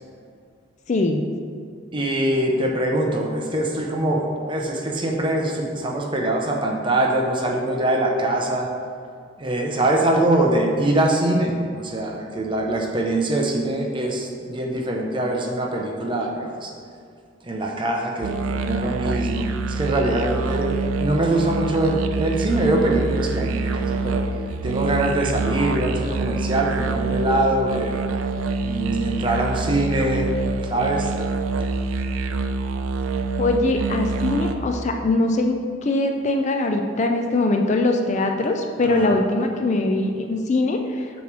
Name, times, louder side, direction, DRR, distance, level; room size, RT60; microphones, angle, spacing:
voice 1, 0.9-1.2 33.4-41.1, left 2 dB, 35° left, 3 dB, 0.4 m, -22 dB
voice 2, 1.9-8.7 9.4-16.7 17.5-19.5 19.8-20.7 21.0-24.2 24.6-27.9 28.6-30.3 30.7-31.1 38.8-39.1, right 1 dB, 25° right, 0 dB, 0.7 m, -23 dB
sound 1, 18.2-34.6, right 3 dB, 90° right, 0.4 m, -26 dB
7.0 x 3.1 x 6.0 m, 2.2 s
head